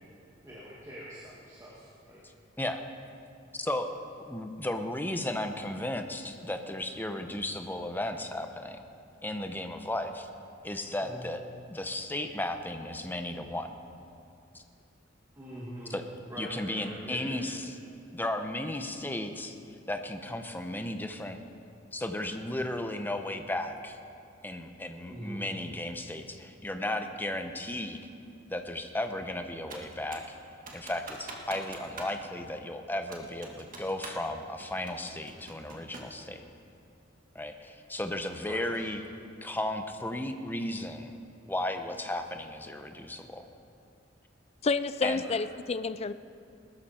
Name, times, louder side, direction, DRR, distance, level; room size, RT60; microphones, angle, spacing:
voice 1, 0.4-2.2 11.0-11.2 15.3-16.0 16.3-17.4 25.1-25.4 38.5-38.8 45.2-45.4, equal, 15° right, -7 dB, 2.2 m, -43 dB
voice 2, 2.6-2.9 3.6-8.8 9.2-10.3 10.6-11.4 11.7-13.7 14.5-14.6 15.9-16.0 16.4-17.8 18.1-19.6 19.9-21.4 21.9-24.0 24.4-28.0 28.5-30.2 30.7-36.4 37.3-39.0 39.4-41.1 41.5-43.5 45.0-45.2, left 1 dB, 10° left, 6 dB, 0.8 m, -35 dB
Computer keyboard, 29.7-30.3 30.7-32.2 32.4-32.5 33.1-34.3 34.6-36.2, right 3 dB, 45° right, 1.9 m, -44 dB
voice 3, 44.6-46.1, left 4 dB, 30° left, 14 dB, 0.4 m, -29 dB
20.0 x 13.0 x 4.4 m, 2.6 s
head